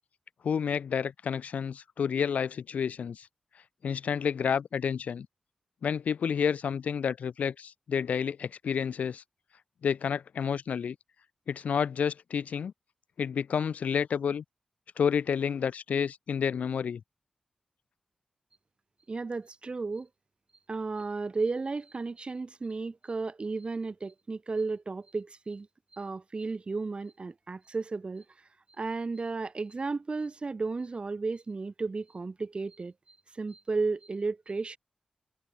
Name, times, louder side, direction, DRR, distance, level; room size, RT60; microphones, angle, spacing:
voice 1, 0.4-3.3 3.8-5.3 5.8-9.2 9.8-11.0 11.5-12.7 13.2-14.4 15.0-17.0, left 7 dB, 90° left, 2.3 m, -30 dB
voice 2, 19.1-20.1 20.7-25.7 25.9-28.2 28.8-34.8, right 3 dB, 45° right, 5.9 m, -34 dB
cardioid pair, 65°, 2 cm